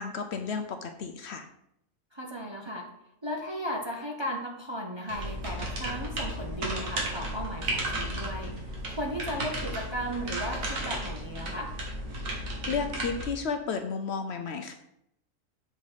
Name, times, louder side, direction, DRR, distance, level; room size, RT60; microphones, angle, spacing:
voice 1, 0.0-1.5 12.7-14.7, left 5 dB, 65° left, 6 dB, 0.8 m, -32 dB
voice 2, 2.1-2.9 3.2-8.5 8.9-11.7, equal, 30° right, 0 dB, 0.6 m, -35 dB
sound 1, 5.1-13.3, right 1 dB, 90° right, 1.8 m, -34 dB
6.5 x 4.0 x 4.8 m, 0.78 s
omnidirectional pair, 1.4 m